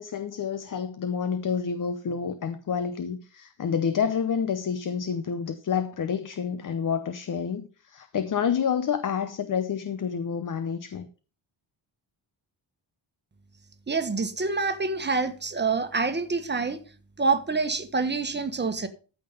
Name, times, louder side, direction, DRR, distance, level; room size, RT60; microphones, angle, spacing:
voice 1, 0.0-11.1, left 7 dB, 40° left, 0.8 m, -29 dB
voice 2, 13.9-16.8 17.2-18.9, right 4 dB, 20° right, 1.3 m, -26 dB
14.0 x 5.9 x 5.4 m
wide cardioid pair, 140°, 47 cm